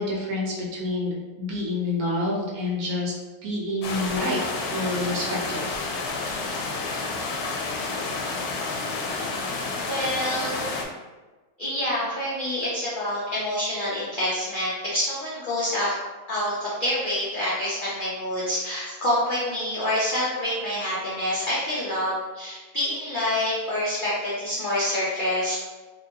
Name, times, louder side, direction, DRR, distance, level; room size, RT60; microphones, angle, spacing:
voice 1, 0.0-3.1 3.4-4.4 4.7-5.7, left 2 dB, 75° right, -3 dB, 1.2 m, -28 dB
sound 1, 3.8-10.8, left 3 dB, 90° left, 1.1 m, -30 dB
voice 2, 9.8-10.7 11.6-16.0 16.3-25.6, left 1 dB, 40° left, -8 dB, 0.8 m, -27 dB
4.3 x 2.7 x 2.7 m, 1.2 s
omnidirectional pair, 1.6 m